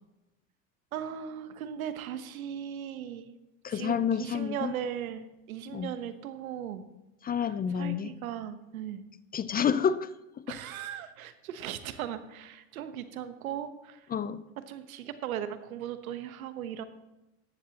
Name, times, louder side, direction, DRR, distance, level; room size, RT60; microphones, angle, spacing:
voice 1, 0.9-3.3 3.7-6.8 7.7-9.0 10.5-14.1 14.7-16.8, right 9 dB, 85° right, 10 dB, 1.2 m, -38 dB
voice 2, 3.6-4.7 5.7-5.9 7.2-8.1 9.3-10.1 10.4-10.6 14.1-14.4, left 7 dB, 20° left, 15 dB, 0.5 m, -29 dB
14.5 x 11.0 x 2.9 m, 0.97 s
hypercardioid pair, 90°, 41 cm